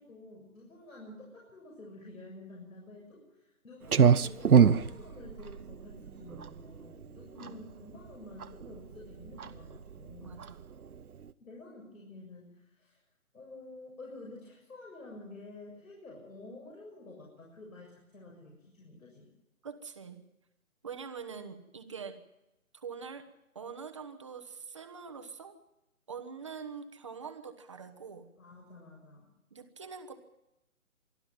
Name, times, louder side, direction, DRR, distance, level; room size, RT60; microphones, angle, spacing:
voice 1, 0.0-10.5 11.4-13.0 13.3-19.3 28.4-29.3, left 2 dB, 70° left, -1 dB, 7.2 m, -50 dB
Clock, 3.8-11.3, right 7 dB, 85° right, 1.0 m, -27 dB
voice 2, 10.2-10.6 19.6-20.2 20.8-22.2 22.7-23.3 23.5-25.6 26.1-28.3 29.5-30.2, right 6 dB, 20° right, 7 dB, 1.1 m, -44 dB
25.0 x 12.5 x 9.1 m, 0.92 s
hypercardioid pair, 170°, 43 cm